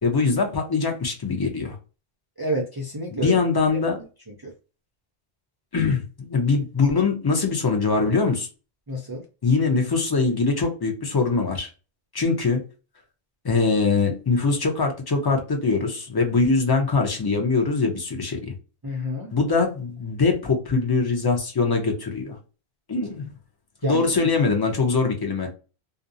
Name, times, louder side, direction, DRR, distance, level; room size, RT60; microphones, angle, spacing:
voice 1, 0.0-1.7 3.1-4.0 5.7-8.5 9.4-11.7 12.1-12.6 13.4-18.5 19.3-22.4 22.9-23.3 23.8-25.5, left 4 dB, 30° left, 2 dB, 0.5 m, -22 dB
voice 2, 2.4-3.4 4.4-4.5 8.9-9.2 18.8-19.3 23.8-24.1, right 1 dB, 35° right, -1 dB, 0.3 m, -28 dB
2.4 x 2.0 x 2.6 m, 0.33 s
omnidirectional pair, 1.1 m